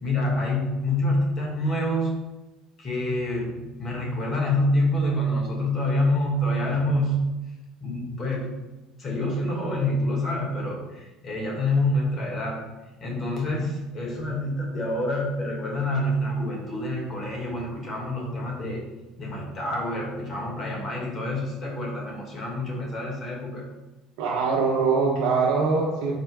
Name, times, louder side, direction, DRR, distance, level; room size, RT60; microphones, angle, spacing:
voice 1, 0.0-2.1 2.8-7.2 7.8-8.5 9.0-12.6 13.0-18.8 19.2-23.6, left 1 dB, 35° left, -1 dB, 1.1 m, -27 dB
voice 2, 24.2-26.2, right 4 dB, 85° right, -3 dB, 0.7 m, -23 dB
4.2 x 2.1 x 4.5 m, 1.1 s
cardioid pair, 120°, 0 cm